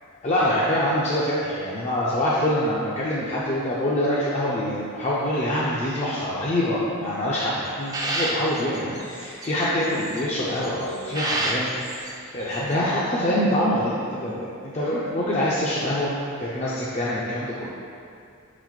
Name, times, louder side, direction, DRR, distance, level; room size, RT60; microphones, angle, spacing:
voice 1, 0.2-11.7 11.9-16.1 16.4-17.7, left 1 dB, 35° left, -7 dB, 0.6 m, -25 dB
sound 1, 7.7-10.2 10.6-12.1 12.4-12.7, right 2 dB, 20° right, 0.5 m, -30 dB
5.0 x 4.0 x 4.7 m, 2.4 s
head